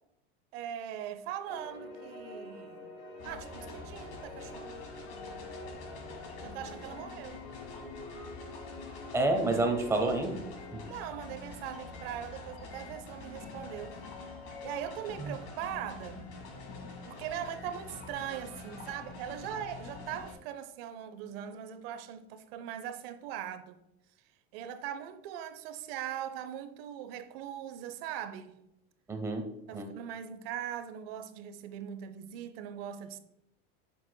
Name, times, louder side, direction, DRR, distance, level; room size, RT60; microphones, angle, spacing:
voice 1, 0.5-2.9 3.2-4.9 6.4-7.5 10.8-14.0 14.6-16.3 17.1-23.8 24.5-28.6 29.7-33.2, right 10 dB, 70° right, 0.7 m, -40 dB
sound 1, 1.4-10.8, left 2 dB, 90° left, 2.4 m, -47 dB
sound 2, 3.2-20.3, left 3 dB, 50° left, 1.7 m, -46 dB
voice 2, 9.1-10.4 10.7-10.8 15.2-15.3 29.1-29.4 29.7-29.9, right 2 dB, 10° right, 0.7 m, -29 dB
7.2 x 6.2 x 2.2 m
supercardioid pair, 155°, 31 cm